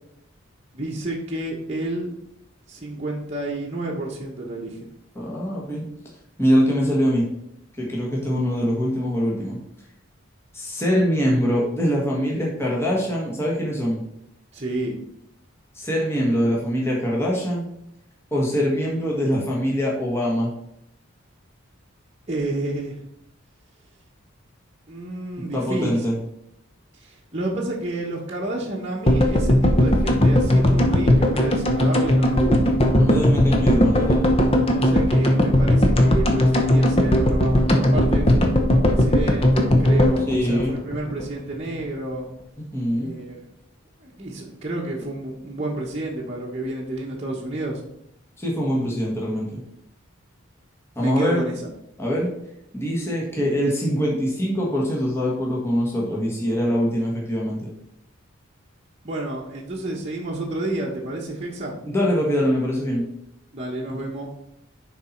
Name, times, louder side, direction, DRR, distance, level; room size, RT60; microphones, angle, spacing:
voice 1, 0.7-2.1 2.7-4.9 14.5-15.0 22.3-23.0 24.9-26.0 26.9-32.8 34.7-42.3 42.9-43.4 44.0-47.8 51.0-51.6 59.0-61.8 63.5-64.3, right 2 dB, 30° right, -4 dB, 1.1 m, -30 dB
voice 2, 5.1-5.8 6.4-7.2 7.8-9.6 10.5-14.0 15.7-17.7 18.3-20.5 25.5-26.2 33.0-34.3 40.3-40.7 42.7-43.1 48.4-49.6 50.9-51.4 52.0-52.3 52.7-57.7 61.8-63.1, equal, 10° left, -4 dB, 1.5 m, -23 dB
sound 1, 29.1-41.3 41.5-41.6 41.8-41.9, left 1 dB, 25° left, 0.9 m, -18 dB
10.0 x 4.1 x 4.4 m, 0.78 s
head